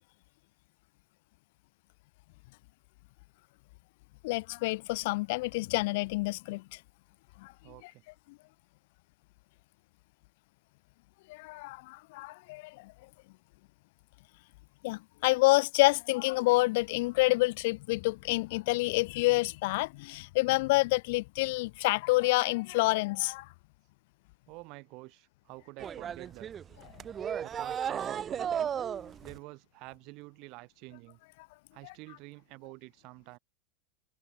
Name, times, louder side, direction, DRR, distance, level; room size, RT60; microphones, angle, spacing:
voice 1, 4.2-6.8 7.4-7.5 11.3-12.9 14.8-23.5, left 23 dB, 65° left, 0.4 m, -28 dB
voice 2, 7.6-8.0 24.5-26.5 27.4-28.7 29.2-31.2 31.7-33.4, right 26 dB, 55° right, 3.5 m, -48 dB
sound 1, 25.8-29.4, right 8 dB, 30° right, 1.3 m, -35 dB
hypercardioid pair, 100°, 0 cm